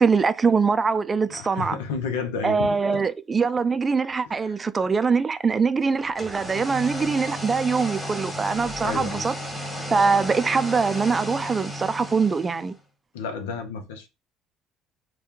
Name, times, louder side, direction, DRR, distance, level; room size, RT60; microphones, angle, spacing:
voice 1, 0.0-1.8 2.4-9.3 9.9-12.7, right 5 dB, 30° right, 0.3 m, -23 dB
voice 2, 1.3-3.0 8.8-9.2 13.1-14.1, left 5 dB, 85° left, 0.6 m, -31 dB
sound 1, 6.0-12.8, equal, 5° left, 1.4 m, -34 dB
3.4 x 2.2 x 2.8 m
hypercardioid pair, 65°, 0 cm